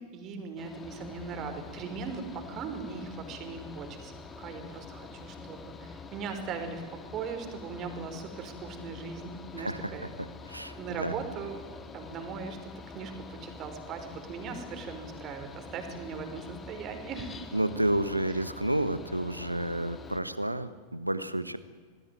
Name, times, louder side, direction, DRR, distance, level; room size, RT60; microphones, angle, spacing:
voice 1, 0.0-4.1 4.4-6.8 7.1-10.1 10.8-11.6 11.9-17.4, right 5 dB, 35° right, 6 dB, 5.2 m, -39 dB
Mechanical fan, 0.6-20.2, left 4 dB, 20° left, 2.4 m, -46 dB
voice 2, 9.6-11.2 17.5-21.6, right 1 dB, 85° right, 13 dB, 1.4 m, -31 dB
28.0 x 20.0 x 9.5 m, 1.5 s
figure-of-eight pair, 90°, 0 cm